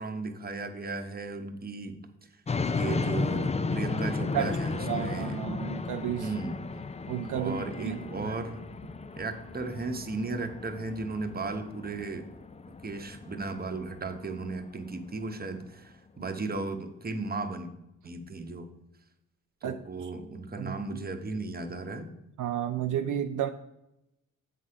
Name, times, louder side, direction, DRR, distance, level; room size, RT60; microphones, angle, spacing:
voice 1, 0.0-2.0 2.7-5.4 6.2-6.6 7.3-8.6 9.2-12.3 12.8-17.7 18.0-18.7 19.6-22.1, right 3 dB, 30° right, 6 dB, 1.0 m, -35 dB
sound 1, 2.5-15.5, left 4 dB, 20° left, 0.4 m, -34 dB
voice 2, 4.1-6.3 7.1-8.4 19.6-20.1 20.6-21.0 22.4-23.5, right 10 dB, 70° right, 7 dB, 0.5 m, -33 dB
7.5 x 4.1 x 4.8 m, 0.88 s
cardioid pair, 65°, 32 cm